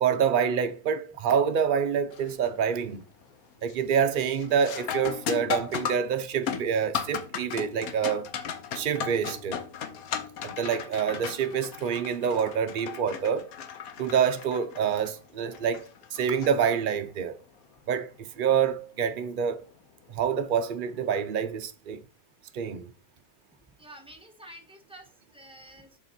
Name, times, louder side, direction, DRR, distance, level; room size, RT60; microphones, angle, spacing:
voice 1, 0.0-3.0 3.6-8.3 8.7-9.6 10.4-13.5 14.0-17.4 17.9-19.6 20.1-22.0 22.5-22.9, right 7 dB, 55° right, 0.5 m, -27 dB
sound 1, 2.1-2.5 2.9-3.3 3.7-17.2 19.7-19.8 20.6-20.9, left 8 dB, 65° left, 1.2 m, -36 dB
voice 2, 23.8-26.0, right 1 dB, 5° right, 1.1 m, -49 dB
6.9 x 4.7 x 4.3 m
omnidirectional pair, 1.7 m